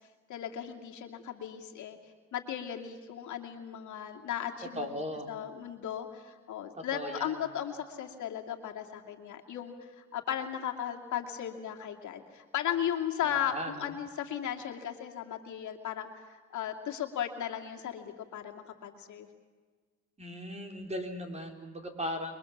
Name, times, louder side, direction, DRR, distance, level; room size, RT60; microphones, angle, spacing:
voice 1, 0.3-2.0 2.3-4.9 5.3-16.2 16.5-19.3, left 10 dB, 75° left, 3 dB, 2.5 m, -36 dB
voice 2, 4.8-5.3 6.9-7.3 13.2-13.9 20.2-22.4, equal, 20° right, 3 dB, 4.0 m, -38 dB
27.5 x 22.5 x 7.3 m, 1.4 s
cardioid pair, 90°, 30 cm